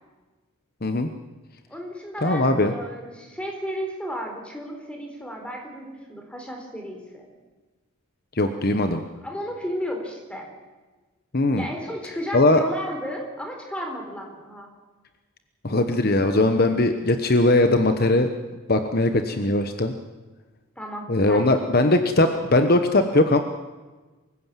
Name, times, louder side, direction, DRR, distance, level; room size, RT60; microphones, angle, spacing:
voice 1, 1.7-7.3 9.2-10.5 11.6-14.7 20.8-21.9, equal, 5° left, 2 dB, 4.0 m, -34 dB
voice 2, 2.2-2.7 8.4-9.0 11.3-11.6 12.3-12.6 15.6-18.3 18.7-19.9 21.1-23.4, left 2 dB, 45° left, 7 dB, 1.1 m, -20 dB
24.5 x 15.5 x 7.5 m, 1.3 s
head